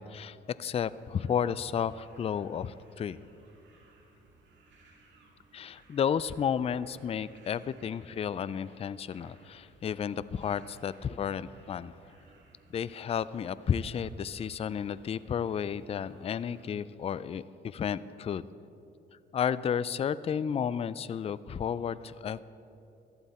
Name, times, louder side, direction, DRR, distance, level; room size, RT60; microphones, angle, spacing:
voice 1, 0.0-3.2 5.5-11.9 12.7-18.5 19.3-22.4, left 8 dB, 30° left, 17 dB, 0.3 m, -32 dB
sound 1, 0.7-16.8, right 3 dB, 70° right, 2.1 m, -61 dB
13.5 x 11.5 x 4.3 m, 2.8 s
cardioid pair, 90°, 20 cm